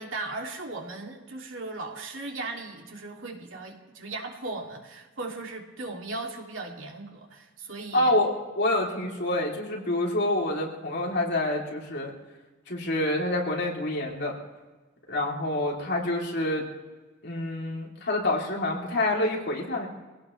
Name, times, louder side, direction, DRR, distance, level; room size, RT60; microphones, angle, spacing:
voice 1, 0.0-8.2, right 2 dB, 80° right, 1 dB, 2.6 m, -37 dB
voice 2, 7.9-12.1 12.7-14.4 15.1-16.6 17.2-19.9, left 1 dB, 60° left, -2 dB, 3.1 m, -27 dB
23.5 x 17.0 x 3.3 m, 1.3 s
head